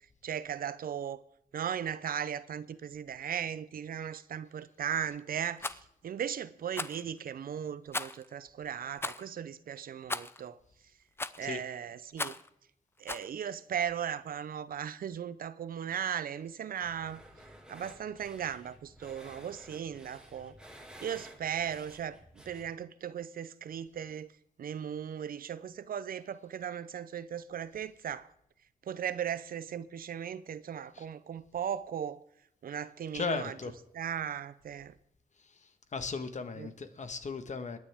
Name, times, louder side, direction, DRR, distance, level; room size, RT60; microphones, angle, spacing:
voice 1, 0.2-1.2 1.5-10.6 11.4-12.4 13.0-17.2 17.7-20.5 21.0-22.2 22.5-24.3 24.6-28.3 28.8-32.2 32.6-33.5 33.9-34.9 36.6-36.7, right 8 dB, 75° right, 0.6 m, -37 dB
Rattle, 5.6-5.8 6.7-7.0 7.9-8.3 9.0-9.2 10.1-10.4 11.2-11.5 12.2-12.5 13.1-13.3, left 2 dB, 15° left, 0.5 m, -36 dB
sound 1, 16.8-22.7, equal, 5° right, 2.4 m, -53 dB
voice 2, 33.1-33.7 35.6-37.8, left 5 dB, 55° left, 1.3 m, -36 dB
24.5 x 9.7 x 3.6 m
cardioid pair, 90°, 15 cm